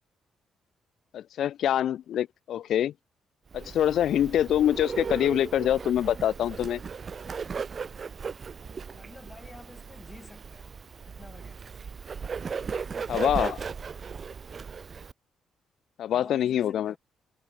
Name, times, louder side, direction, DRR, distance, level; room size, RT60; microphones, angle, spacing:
voice 1, 1.1-2.9 3.5-6.8 13.1-13.6 16.0-17.0, left 10 dB, 70° left, 0.8 m, -25 dB
Bird, 3.5-15.1, right 5 dB, 40° right, 1.3 m, -37 dB
voice 2, 8.9-12.0 16.1-17.0, left 2 dB, 20° left, 4.9 m, -50 dB
cardioid pair, 90°, 0 cm